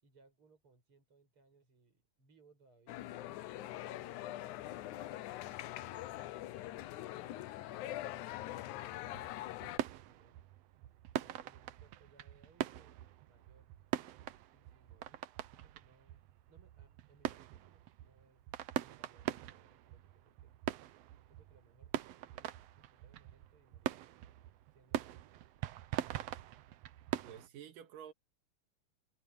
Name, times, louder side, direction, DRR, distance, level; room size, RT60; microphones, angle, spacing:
voice 1, 0.0-3.2 3.5-5.5 5.9-10.4 11.1-13.7 14.5-18.5 18.8-20.6 21.3-24.0 24.7-25.3, right 3 dB, 35° right, 8.1 m, -68 dB
sound 1, 2.9-9.8, left 14 dB, 75° left, 2.1 m, -43 dB
sound 2, 9.0-27.5, right 12 dB, 90° right, 1.4 m, -43 dB
voice 2, 27.2-28.1, right 9 dB, 75° right, 3.2 m, -50 dB
omnidirectional pair, 4.0 m